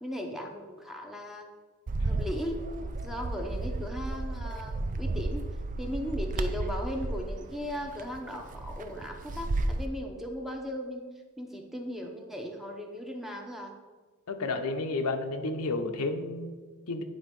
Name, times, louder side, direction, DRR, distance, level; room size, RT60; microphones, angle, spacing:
voice 1, 0.0-1.5 2.0-2.7 3.0-5.4 5.8-11.1 11.4-13.7, equal, ahead, 2 dB, 0.7 m, -37 dB
Bird, 1.9-9.9, right 2 dB, 35° right, 0.4 m, -33 dB
voice 2, 14.3-17.0, left 3 dB, 75° left, 6 dB, 0.7 m, -32 dB
9.4 x 3.6 x 5.3 m, 1.3 s
head